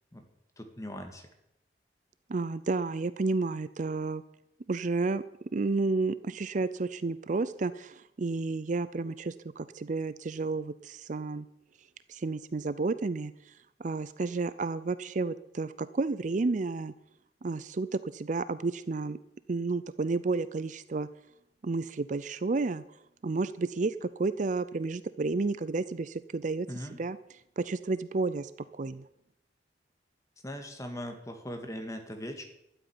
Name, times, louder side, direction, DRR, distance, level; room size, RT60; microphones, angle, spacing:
voice 1, 0.6-1.3 26.7-27.0 30.4-32.5, equal, 20° left, 5 dB, 2.0 m, -40 dB
voice 2, 2.3-4.2 4.7-5.2 5.5-11.5 12.1-13.5 13.8-16.9 17.4-19.2 19.5-21.1 21.6-22.8 23.2-26.7 27.0-27.2 27.6-29.0, right 3 dB, 45° right, 15 dB, 0.5 m, -31 dB
12.5 x 8.0 x 9.8 m, 0.82 s
head